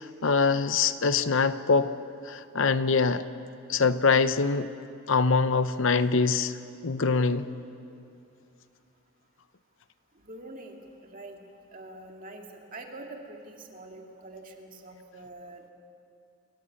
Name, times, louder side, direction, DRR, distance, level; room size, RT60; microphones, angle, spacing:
voice 1, 0.0-1.9 2.2-3.2 3.7-4.7 5.1-6.5 6.8-7.5, left 4 dB, 60° left, 12 dB, 0.7 m, -24 dB
voice 2, 10.2-10.8 11.0-11.4 11.7-15.7, right 2 dB, 40° right, 2 dB, 2.1 m, -45 dB
28.0 x 15.0 x 8.4 m, 2.7 s
head